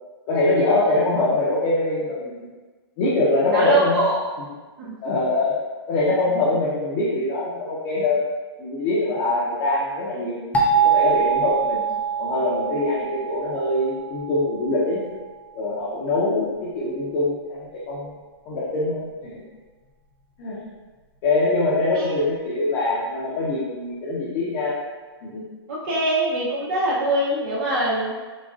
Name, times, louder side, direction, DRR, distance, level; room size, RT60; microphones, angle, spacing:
voice 1, 0.3-2.5 3.0-4.1 5.0-5.5 5.9-8.2 8.6-10.4 10.8-11.8 12.2-15.0 15.5-18.2 18.5-19.4 20.4-20.6 21.2-24.8 25.3-25.4, left 2 dB, 40° left, -8 dB, 0.7 m, -23 dB
voice 2, 3.5-4.2 4.8-5.0 21.9-22.2 25.7-28.1, right 1 dB, 55° right, -7 dB, 0.7 m, -23 dB
sound 1, 10.5-15.3, right 6 dB, 10° left, 0.3 m, -24 dB
3.9 x 2.0 x 2.4 m, 1.3 s
hypercardioid pair, 130°, 14 cm